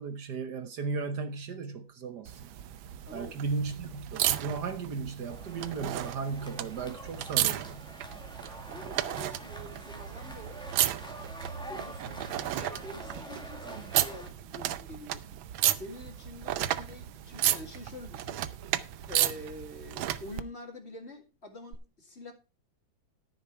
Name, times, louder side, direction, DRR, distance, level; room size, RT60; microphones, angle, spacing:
voice 1, 0.0-2.4 3.1-7.9 13.6-14.0, right 5 dB, 60° right, 1.5 m, -36 dB
sound 1, 2.3-20.4 21.7-21.8, right 12 dB, 85° right, 1.5 m, -33 dB
sound 2, 5.3-14.3, equal, ahead, 1.8 m, -47 dB
voice 2, 8.7-10.6 11.6-15.4 15.7-18.4 19.1-22.3, left 2 dB, 35° left, 2.4 m, -46 dB
13.5 x 7.0 x 4.5 m
omnidirectional pair, 2.1 m